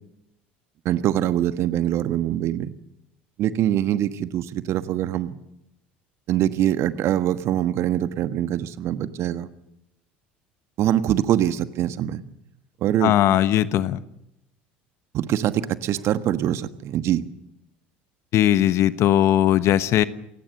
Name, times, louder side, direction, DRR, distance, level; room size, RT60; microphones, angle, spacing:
voice 1, 0.8-2.7 3.4-5.4 6.3-9.5 10.8-12.2 12.8-13.1 15.1-17.2, right 11 dB, 50° right, 11 dB, 1.4 m, -23 dB
voice 2, 13.0-14.0 18.3-20.0, left 12 dB, 50° left, 14 dB, 1.2 m, -19 dB
28.0 x 17.0 x 6.7 m, 0.87 s
hypercardioid pair, 70°, 6 cm